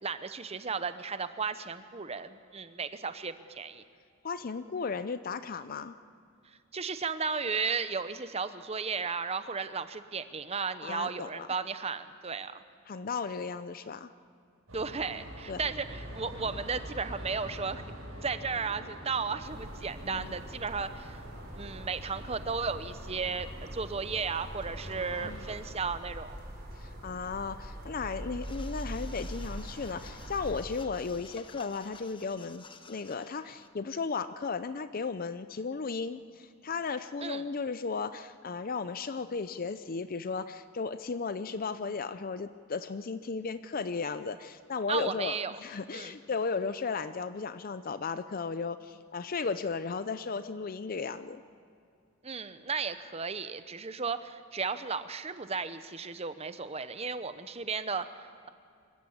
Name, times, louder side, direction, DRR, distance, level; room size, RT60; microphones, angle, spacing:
voice 1, 0.0-3.8 6.7-12.6 14.7-17.8 18.2-21.2 21.6-26.4 37.2-37.4 44.9-45.5 45.9-46.2 52.2-58.5, right 5 dB, 30° right, 11 dB, 0.8 m, -34 dB
voice 2, 4.2-6.0 10.8-11.5 12.9-14.1 15.5-15.6 20.0-20.3 24.9-25.4 26.8-51.4, left 4 dB, 45° left, 12 dB, 0.5 m, -35 dB
sound 1, 14.7-25.6, equal, 90° right, 6.9 m, -45 dB
sound 2, 19.4-30.6, right 1 dB, 50° right, 4.9 m, -43 dB
sound 3, 28.4-33.7, left 5 dB, 25° left, 1.0 m, -53 dB
25.0 x 14.5 x 8.5 m, 2.4 s
head